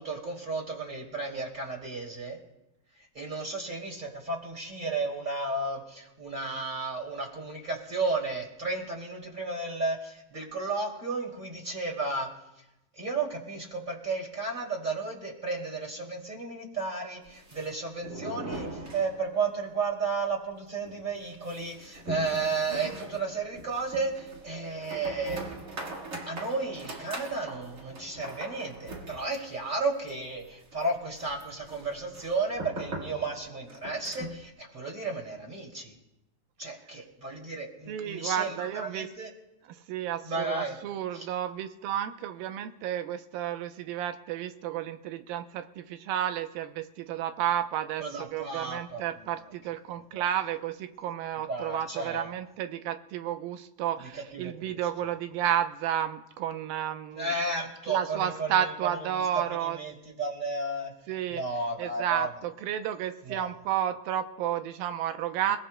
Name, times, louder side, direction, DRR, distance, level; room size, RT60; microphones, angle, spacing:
voice 1, 0.0-2.4 3.0-12.3 12.9-25.4 26.3-35.9 36.6-39.3 40.2-40.8 41.1-41.3 48.0-49.0 50.1-50.2 51.5-52.3 54.0-54.8 57.1-60.9 61.3-62.3 63.2-63.5, right 3 dB, 15° right, 0 dB, 2.1 m, -33 dB
sound 1, 17.2-19.6 19.9-20.0 20.3-20.4 20.8-34.5, right 1 dB, 60° right, 0.8 m, -42 dB
voice 2, 37.9-39.1 39.9-57.3 57.9-59.8 61.1-61.4 61.8-65.6, right 10 dB, 85° right, 8 dB, 2.5 m, -32 dB
28.0 x 18.0 x 2.2 m, 0.93 s
omnidirectional pair, 4.1 m